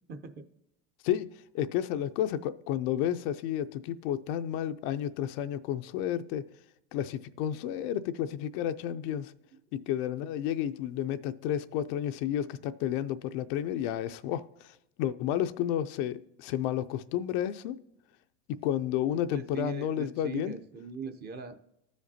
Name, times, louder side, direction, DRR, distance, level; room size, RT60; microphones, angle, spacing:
voice 1, 0.1-0.4 9.7-9.9 19.3-21.5, right 5 dB, 30° right, 0.6 m, -41 dB
voice 2, 1.5-6.5 6.9-9.3 9.7-17.8 18.5-20.6, left 11 dB, 55° left, 0.4 m, -31 dB
14.0 x 5.1 x 2.7 m
supercardioid pair, 130°, 34 cm